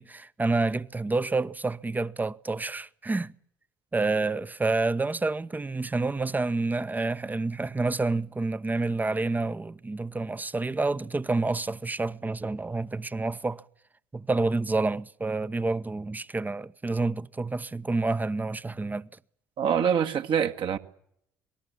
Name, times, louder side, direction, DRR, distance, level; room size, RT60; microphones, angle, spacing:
voice 1, 0.0-3.3 3.9-13.6 14.1-19.1, right 3 dB, 15° right, 0.9 m, -28 dB
voice 2, 19.6-20.8, right 8 dB, 50° right, 1.8 m, -25 dB
26.0 x 19.5 x 8.5 m
figure-of-eight pair, 50°, 11 cm